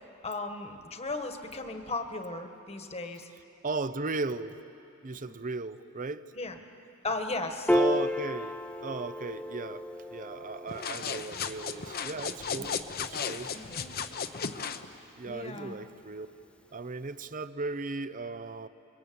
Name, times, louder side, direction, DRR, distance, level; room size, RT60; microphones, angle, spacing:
voice 1, 0.2-3.3 5.2-5.4 6.4-6.5 7.0-7.7 13.5-13.9 15.3-15.7, left 2 dB, 30° left, 1.5 m, -36 dB
voice 2, 3.6-4.6 5.0-6.3 7.7-13.5 15.2-16.3 16.7-18.7, right 3 dB, 35° right, 0.7 m, -36 dB
Piano, 7.7-14.3, left 1 dB, 5° left, 0.6 m, -33 dB
sound 1, 10.7-14.9, left 6 dB, 45° left, 0.9 m, -35 dB
29.5 x 22.5 x 8.7 m
head